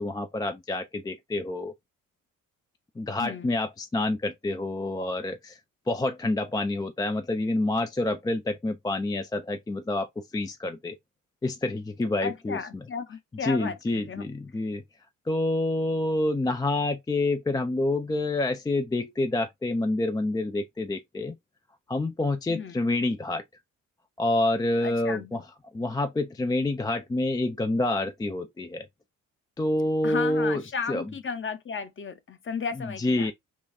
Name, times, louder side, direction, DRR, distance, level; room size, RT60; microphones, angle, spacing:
voice 1, 0.0-1.7 3.0-5.6 5.9-11.0 11.4-12.6 13.4-14.8 15.3-21.3 21.9-23.4 24.2-25.4 25.7-28.9 29.6-30.6 30.9-31.1 33.0-33.3, left 2 dB, 10° left, 0.4 m, -27 dB
voice 2, 3.2-3.5 12.2-14.2 22.5-22.7 24.8-25.4 30.0-33.3, left 6 dB, 30° left, 0.8 m, -34 dB
5.4 x 2.3 x 2.6 m
figure-of-eight pair, 45°, 41 cm